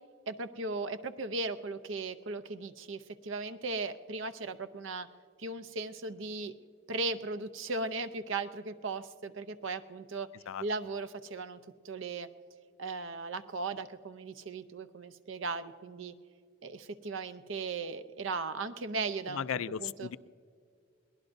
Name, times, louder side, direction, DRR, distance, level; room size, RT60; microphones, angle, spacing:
voice 1, 0.3-5.1 5.4-6.5 6.9-10.3 10.6-11.6 11.8-12.3 12.8-16.1 16.6-20.1, right 3 dB, 65° right, 10 dB, 0.7 m, -37 dB
voice 2, 19.3-20.2, left 8 dB, 80° left, 16 dB, 0.4 m, -36 dB
22.5 x 18.0 x 2.6 m, 2.1 s
head